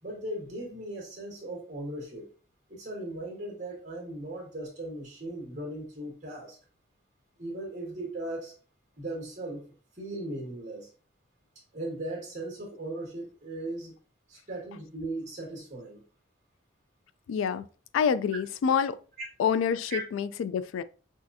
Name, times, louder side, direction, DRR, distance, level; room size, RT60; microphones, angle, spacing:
voice 1, 0.0-2.2 2.7-6.6 7.4-8.5 9.0-9.7 9.9-10.9 11.7-13.9 14.3-16.0 19.9-20.0, right 1 dB, 35° right, 1.7 m, -38 dB
voice 2, 17.3-17.6 17.9-18.9 19.4-20.8, left 7 dB, 80° left, 0.3 m, -27 dB
6.1 x 2.5 x 2.7 m
head